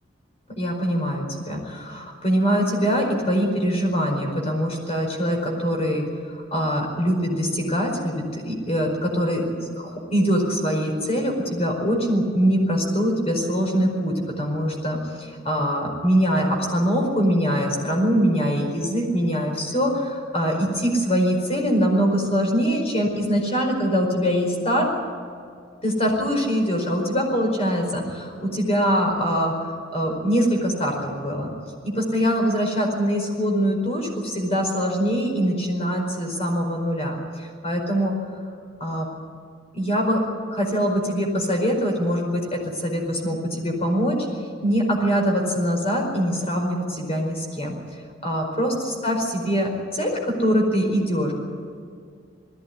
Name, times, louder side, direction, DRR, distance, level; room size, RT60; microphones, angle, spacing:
voice 1, 0.6-24.9 25.8-29.5 29.9-31.5 31.8-38.1 38.8-39.1 39.7-40.2 40.5-44.2 44.6-47.7 48.2-51.3, equal, 35° left, 1 dB, 4.9 m, -23 dB
20.0 x 15.5 x 9.8 m, 2.2 s
head